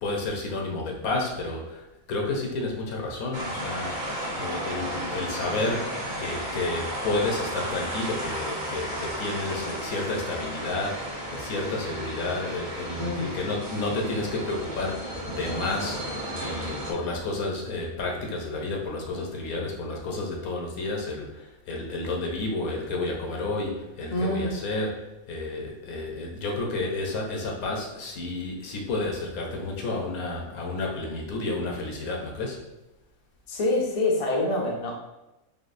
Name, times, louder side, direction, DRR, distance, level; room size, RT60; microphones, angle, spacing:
voice 1, 0.0-16.1 16.4-32.6, left 2 dB, 80° left, 0 dB, 1.3 m, -31 dB
sound 1, 3.3-16.9, equal, 65° right, 1.3 m, -33 dB
voice 2, 24.1-24.5 33.5-34.9, left 2 dB, 40° left, -1 dB, 0.5 m, -26 dB
3.9 x 3.5 x 2.5 m, 0.97 s
omnidirectional pair, 1.5 m